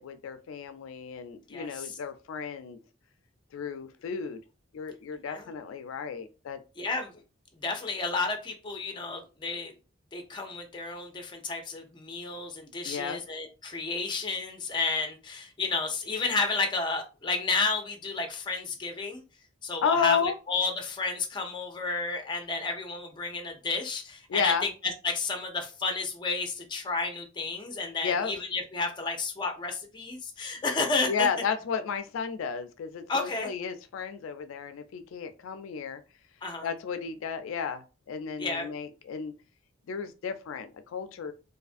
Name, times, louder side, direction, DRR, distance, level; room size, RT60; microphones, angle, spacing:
voice 1, 0.0-2.8 3.5-4.4 4.7-6.6 12.8-13.2 19.8-20.4 24.3-24.7 28.0-28.3 31.1-36.0 36.6-37.8 38.1-39.3 39.9-41.3, left 6 dB, 90° left, 0.3 m, -32 dB
voice 2, 1.5-2.0 5.3-5.5 6.8-7.1 7.6-9.7 10.1-19.2 19.6-31.3 33.1-33.5 36.4-36.7 38.4-38.7, left 3 dB, 25° left, 0.5 m, -31 dB
2.6 x 2.4 x 2.4 m
head